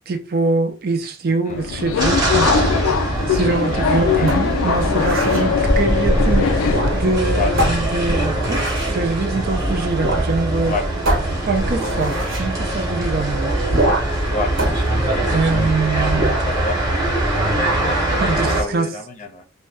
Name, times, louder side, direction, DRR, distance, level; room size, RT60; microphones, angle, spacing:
voice 1, 0.1-10.8 11.4-13.6 15.3-16.4 18.2-19.0, right 3 dB, 50° right, 0.5 m, -23 dB
Subway metro underground, 1.5-7.1, left 6 dB, 85° left, 0.3 m, -21 dB
sound 1, 2.0-18.6, right 1 dB, 20° right, 0.8 m, -22 dB
sound 2, 4.3-5.5 6.6-7.2 7.6-9.0 10.0-10.3 10.6-10.7 11.0-12.5 13.7-14.2 14.6-15.7 16.1-16.5, right 1 dB, 70° right, 0.9 m, -24 dB
voice 2, 16.4-17.2 18.5-19.4, left 3 dB, 40° left, 0.6 m, -28 dB
2.6 x 2.2 x 3.2 m
head